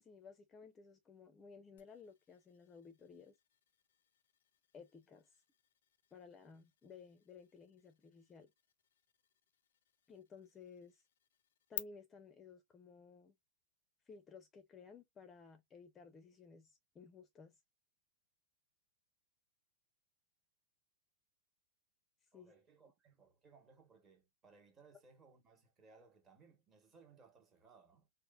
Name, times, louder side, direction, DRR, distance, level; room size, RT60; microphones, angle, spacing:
voice 1, 0.0-3.3 4.7-5.3 6.1-8.5 10.1-11.0 11.7-13.3 14.1-17.6 22.3-22.5, left 5 dB, 20° left, 0.5 m, -57 dB
sound 1, 1.8-11.8, left 11 dB, 80° left, 0.4 m, -55 dB
voice 2, 22.3-28.1, right 4 dB, 25° right, 1.0 m, -65 dB
3.0 x 2.0 x 2.3 m
supercardioid pair, 140°, 0 cm